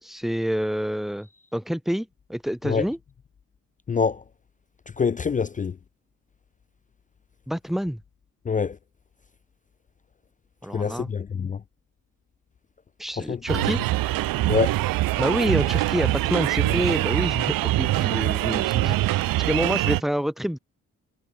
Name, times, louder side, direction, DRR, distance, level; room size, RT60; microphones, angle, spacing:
voice 1, 0.0-3.0 7.5-8.0 10.6-11.1 13.0-13.8 15.2-20.6, equal, ahead, 2.3 m, -27 dB
voice 2, 3.9-4.2 5.0-5.8 8.4-8.8 10.7-11.6 13.2-13.6 14.5-14.8, left 5 dB, 25° left, 0.3 m, -25 dB
sound 1, 13.5-20.0, right 17 dB, 70° right, 0.5 m, -23 dB
supercardioid pair, 50°, 35 cm